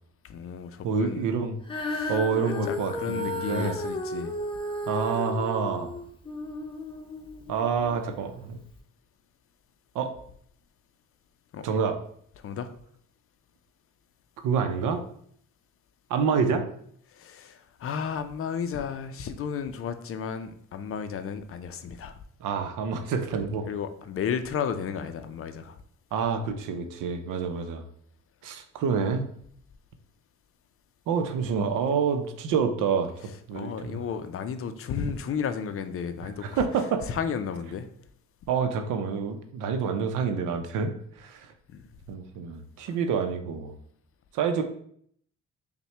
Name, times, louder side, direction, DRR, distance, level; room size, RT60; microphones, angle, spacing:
voice 1, 0.2-1.3 1.9-2.1 2.4-4.4 11.5-11.7 12.4-12.7 17.1-22.2 23.7-25.8 33.5-36.6 37.1-37.9 41.7-41.9, left 7 dB, 50° left, 0.5 m, -33 dB
voice 2, 0.8-1.6 2.1-3.8 4.9-5.9 7.5-8.6 9.9-10.2 11.6-12.0 14.4-15.0 16.1-16.7 22.4-23.7 26.1-27.8 28.4-29.2 31.1-34.0 36.4-37.1 38.5-41.5 42.1-43.8 44.3-44.6, right 6 dB, 90° right, 0.6 m, -27 dB
Female singing, 1.6-8.0 8.7-8.8, left 1 dB, 15° left, 0.7 m, -34 dB
5.5 x 2.2 x 3.2 m
cardioid pair, 90°, 30 cm